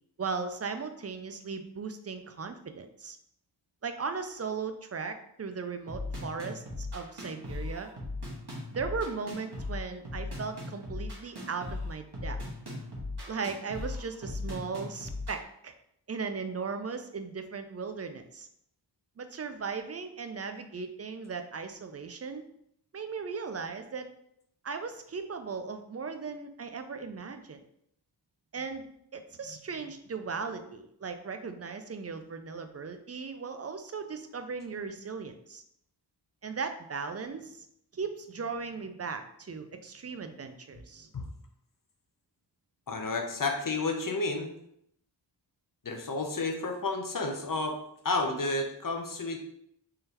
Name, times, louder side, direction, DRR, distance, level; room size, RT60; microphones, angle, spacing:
voice 1, 0.2-3.2 3.8-7.9 8.7-12.4 13.3-15.7 16.1-18.5 19.2-22.4 22.9-24.1 24.6-27.6 28.5-28.9 29.1-35.6 36.4-37.7 37.9-41.1, right 5 dB, 35° right, 7 dB, 0.4 m, -37 dB
sound 1, 5.9-15.4, left 2 dB, 65° right, 1.4 m, -38 dB
voice 2, 42.9-44.5 45.8-47.8 48.0-49.4, left 3 dB, 50° left, 3 dB, 0.7 m, -31 dB
3.7 x 3.2 x 2.9 m, 0.72 s
wide cardioid pair, 40°, 42 cm